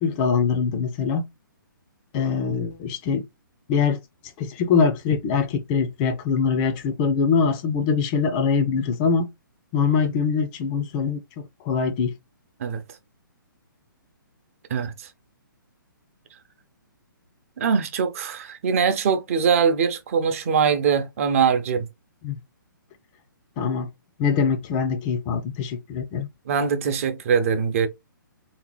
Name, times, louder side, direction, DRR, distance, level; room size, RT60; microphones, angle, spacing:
voice 1, 0.0-1.2 2.1-3.2 3.7-4.0 4.4-9.3 9.7-12.1 22.2-22.3 23.6-23.9 24.2-26.3, left 5 dB, 25° left, 0.5 m, -23 dB
voice 2, 17.6-21.9 26.5-27.9, right 6 dB, 40° right, 0.7 m, -22 dB
3.4 x 2.8 x 3.1 m
figure-of-eight pair, 130°, 11 cm